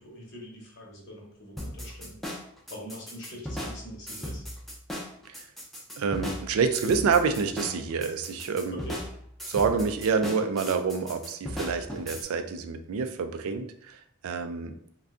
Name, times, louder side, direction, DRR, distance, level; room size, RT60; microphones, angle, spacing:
voice 1, 0.0-2.2 2.7-4.4 8.7-9.0, equal, 55° left, -1 dB, 0.8 m, -43 dB
sound 1, 1.6-12.2, equal, ahead, 0.4 m, -37 dB
voice 2, 6.0-8.8 9.5-14.8, right 5 dB, 90° right, 8 dB, 0.4 m, -27 dB
2.5 x 2.2 x 3.5 m, 0.69 s
head